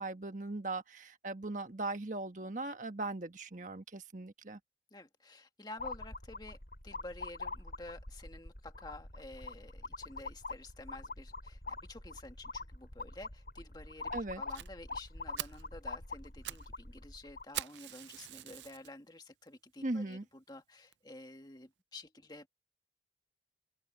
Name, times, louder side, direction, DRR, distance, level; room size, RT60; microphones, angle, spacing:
voice 1, 0.0-4.6 14.1-14.4 19.8-20.2, right 2 dB, 45° right, 1.4 m, -39 dB
voice 2, 4.9-6.6 6.8-22.5, left 2 dB, 25° left, 1.9 m, -51 dB
sound 1, 5.8-17.6, left 3 dB, 55° left, 3.8 m, -44 dB
Fire, 14.5-14.7 15.1-15.2 15.4-15.7 16.2-16.7 16.9-17.0 17.5-18.9 19.5-19.6 20.1-20.2 20.5-20.6 20.9-21.0, right 13 dB, 85° right, 0.5 m, -42 dB
head